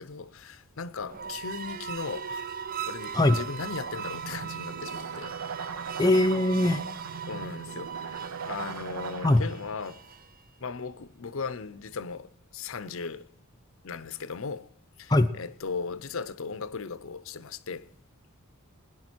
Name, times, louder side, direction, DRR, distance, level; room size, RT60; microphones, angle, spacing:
voice 1, 0.0-2.6 2.9-5.4 7.3-10.0 10.6-13.3 13.8-14.7 15.0-17.9, left 5 dB, 65° left, 0.6 m, -37 dB
sound 1, 1.0-10.4, right 7 dB, 40° right, 0.5 m, -39 dB
sound 2, 3.8-9.8, right 5 dB, 80° right, 0.8 m, -40 dB
voice 2, 6.0-6.8 9.2-9.4 15.1-15.3, left 1 dB, 15° left, 0.5 m, -21 dB
18.5 x 10.5 x 4.4 m
head